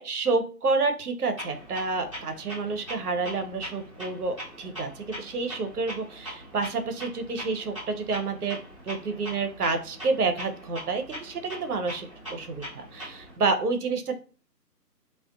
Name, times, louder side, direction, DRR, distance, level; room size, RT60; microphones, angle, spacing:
voice 1, 0.0-8.6 8.9-14.2, right 3 dB, 65° right, 7 dB, 0.7 m, -29 dB
Clock, 1.4-13.4, equal, 20° right, 0.7 m, -42 dB
2.4 x 2.1 x 2.4 m, 0.38 s
figure-of-eight pair, 160°, 49 cm